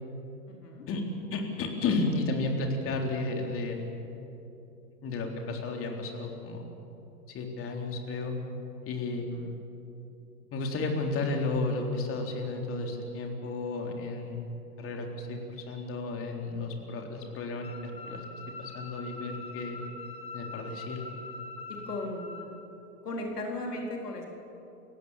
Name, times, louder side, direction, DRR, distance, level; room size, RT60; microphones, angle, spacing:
voice 1, 0.5-0.9 9.3-9.5 21.7-22.5 23.0-24.2, left 1 dB, 80° left, 1 dB, 3.9 m, -37 dB
voice 2, 1.3-3.8 5.0-6.6 7.3-8.4 8.8-9.3 10.5-14.4 14.8-18.3 18.6-19.8 20.3-21.0, left 3 dB, 30° left, 2 dB, 3.7 m, -33 dB
sound 1, 17.6-22.5, left 3 dB, 15° left, 1.8 m, -43 dB
29.0 x 17.0 x 7.4 m, 2.9 s
hypercardioid pair, 110°, 47 cm